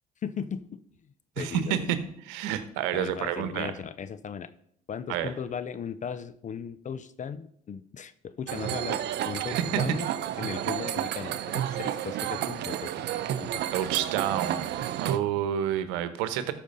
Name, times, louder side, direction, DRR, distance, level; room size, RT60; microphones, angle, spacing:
voice 1, 0.2-0.8 1.4-1.9 2.9-4.5 4.9-9.0 9.3-10.1 10.4-12.9 13.4-13.9, left 7 dB, 40° left, 14 dB, 0.7 m, -37 dB
voice 2, 1.4-2.0 2.2-3.7 5.1-5.3 9.5-9.8 13.7-14.7 15.0-16.5, right 10 dB, 75° right, 12 dB, 1.0 m, -29 dB
sound 1, 8.5-15.2, right 11 dB, 60° right, 0.7 m, -31 dB
13.0 x 5.1 x 5.4 m, 0.70 s
hypercardioid pair, 65°, 20 cm